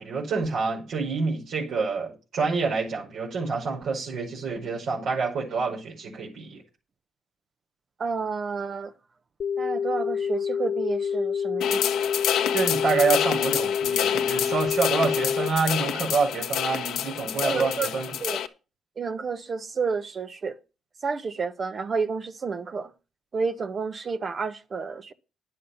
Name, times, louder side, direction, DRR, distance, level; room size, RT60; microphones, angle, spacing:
voice 1, 0.0-6.6 12.5-18.1, right 4 dB, 75° right, 5.1 m, -27 dB
voice 2, 8.0-8.9 9.6-12.1 17.3-17.9 18.2-18.4 19.0-20.6 21.0-22.9 23.3-25.1, right 5 dB, 45° right, 1.0 m, -30 dB
sound 1, 9.4-15.5, left 7 dB, 60° left, 0.5 m, -27 dB
sound 2, 11.6-18.5, left 10 dB, 80° left, 1.2 m, -28 dB
10.5 x 8.4 x 5.8 m
cardioid pair, 90°, 0 cm